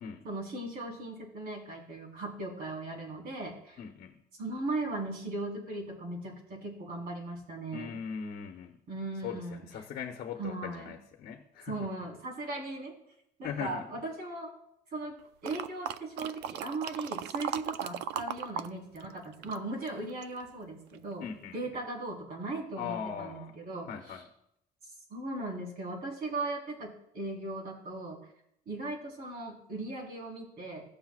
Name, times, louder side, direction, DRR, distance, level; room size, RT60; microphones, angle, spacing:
voice 1, 0.2-3.8 4.4-7.9 8.9-9.7 10.4-10.9 11.7-12.9 13.4-14.5 14.9-15.1 15.4-21.3 21.5-24.2 25.1-28.2 28.7-30.8, right 2 dB, 60° right, -2 dB, 4.2 m, -38 dB
voice 2, 3.8-4.2 7.7-8.7 9.2-11.8 13.4-13.8 21.2-21.6 22.8-23.5 23.9-24.2, left 7 dB, 60° left, 4 dB, 1.0 m, -39 dB
sound 1, 15.4-18.7 19.0-20.4 20.9-21.0, right 10 dB, 90° right, 0.5 m, -37 dB
17.0 x 6.9 x 2.5 m, 0.78 s
cardioid pair, 110°, 17 cm